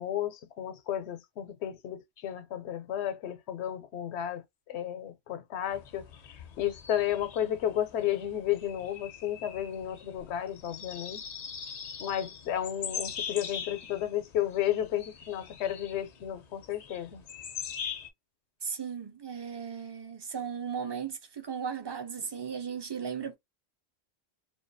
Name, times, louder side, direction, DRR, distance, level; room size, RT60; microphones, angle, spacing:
voice 1, 0.0-6.1 6.6-11.2 12.0-17.2, left 11 dB, 85° left, 0.8 m, -33 dB
sound 1, 5.7-18.1, left 7 dB, 55° left, 0.5 m, -42 dB
voice 2, 18.6-23.3, right 7 dB, 40° right, 0.4 m, -36 dB
2.4 x 2.3 x 2.6 m
omnidirectional pair, 1.1 m